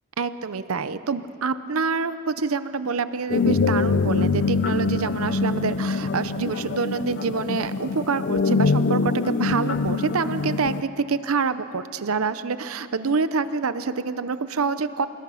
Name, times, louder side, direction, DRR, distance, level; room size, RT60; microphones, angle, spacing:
voice 1, 0.2-15.1, right 4 dB, 75° right, 13 dB, 0.7 m, -26 dB
sound 1, 3.3-10.8, left 4 dB, 55° left, 0.5 m, -24 dB
27.5 x 19.5 x 5.7 m, 2.6 s
head